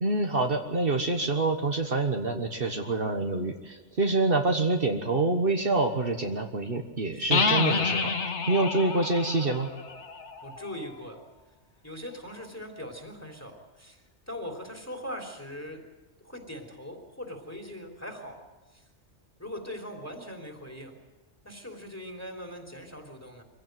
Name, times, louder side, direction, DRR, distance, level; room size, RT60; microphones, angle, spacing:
voice 1, 0.0-8.1 8.5-9.7, right 2 dB, 55° right, 4 dB, 1.6 m, -26 dB
sound 1, 7.3-11.0, left 5 dB, 70° left, 1.6 m, -29 dB
voice 2, 7.6-8.1 10.4-11.2 11.8-15.9 16.2-18.4 18.7-18.8 19.4-21.0 21.4-23.4, equal, 15° left, 4 dB, 3.4 m, -41 dB
24.5 x 16.0 x 9.2 m, 1.2 s
omnidirectional pair, 1.2 m